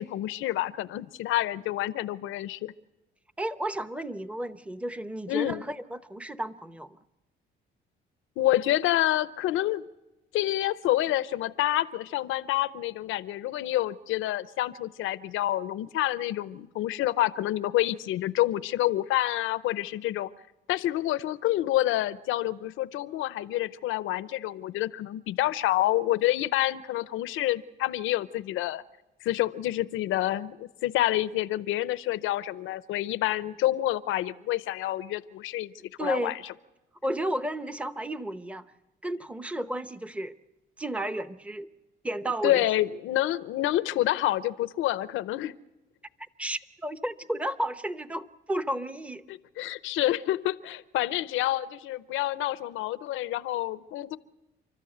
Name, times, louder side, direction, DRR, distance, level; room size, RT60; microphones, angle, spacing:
voice 1, 0.0-2.7 5.3-5.6 8.4-9.9 10.3-20.3 20.7-28.8 29.2-35.7 36.0-36.3 42.4-45.5 49.3-54.2, left 14 dB, 90° left, 16 dB, 0.7 m, -28 dB
voice 2, 3.4-7.0 36.0-36.4 37.0-38.6 39.0-40.3 40.8-41.7 42.0-42.6 46.4-49.2, right 1 dB, 5° right, 12 dB, 0.9 m, -32 dB
30.0 x 13.0 x 8.0 m, 1.0 s
cardioid pair, 90°, 20 cm